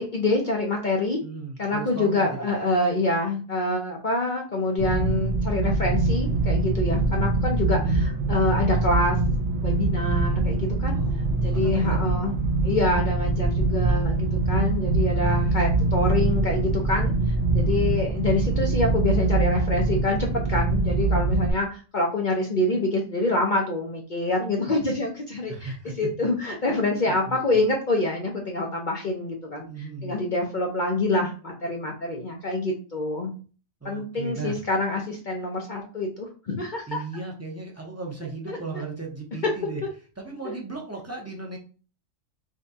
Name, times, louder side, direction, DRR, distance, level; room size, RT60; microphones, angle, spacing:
voice 1, 0.0-1.2 1.6-9.2 9.6-11.0 11.4-12.3 12.6-17.1 17.5-20.2 20.5-29.7 30.0-33.3 33.8-37.0 38.5-38.6 40.4-40.5, left 2 dB, 45° left, 0 dB, 0.7 m, -26 dB
voice 2, 1.2-2.7 7.7-8.0 10.9-12.0 15.2-15.6 17.6-18.0 25.5-25.9 27.3-27.4 29.7-30.2 33.8-34.6 36.9-39.8 40.2-41.6, right 3 dB, 15° right, -1 dB, 0.6 m, -36 dB
sound 1, 4.8-21.5, right 3 dB, 60° right, 0.9 m, -23 dB
5.0 x 2.3 x 2.7 m, 0.36 s
omnidirectional pair, 1.4 m